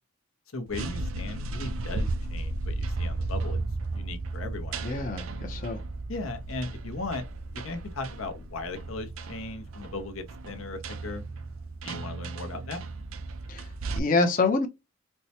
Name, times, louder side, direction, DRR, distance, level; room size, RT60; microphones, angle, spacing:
voice 1, 0.5-3.6 3.9-4.8 6.1-7.2 7.5-11.2 11.8-12.8, left 3 dB, 75° left, 0.8 m, -37 dB
sound 1, 0.7-14.0, right 2 dB, 80° right, 0.5 m, -35 dB
voice 2, 4.8-5.8 13.5-14.7, left 3 dB, 40° left, 0.6 m, -27 dB
4.4 x 2.1 x 2.8 m
head